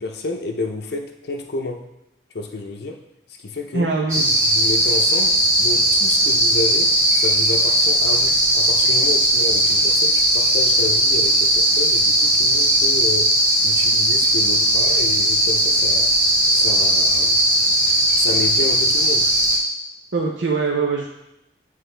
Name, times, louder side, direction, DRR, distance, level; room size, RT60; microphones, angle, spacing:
voice 1, 0.0-1.9 2.3-3.0 3.4-3.9 4.4-13.3 13.6-16.1 16.5-17.4 18.2-19.3, left 3 dB, 60° left, 3 dB, 0.6 m, -30 dB
voice 2, 3.7-4.3 20.1-21.1, right 4 dB, 85° right, -1 dB, 0.6 m, -22 dB
sound 1, 4.1-19.6, right 1 dB, 15° right, 1.5 m, -18 dB
9.0 x 3.3 x 3.3 m, 0.85 s
head